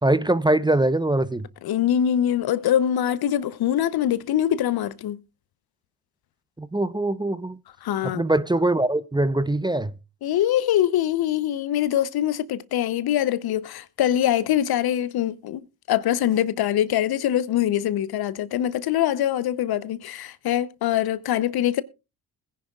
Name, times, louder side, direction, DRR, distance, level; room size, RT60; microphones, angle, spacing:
voice 1, 0.0-1.5 6.6-7.6 8.0-9.9, right 2 dB, 10° right, 0.7 m, -22 dB
voice 2, 1.6-5.2 7.8-8.2 10.2-21.8, left 11 dB, 60° left, 0.8 m, -23 dB
21.0 x 10.0 x 2.3 m
hypercardioid pair, 45°, 43 cm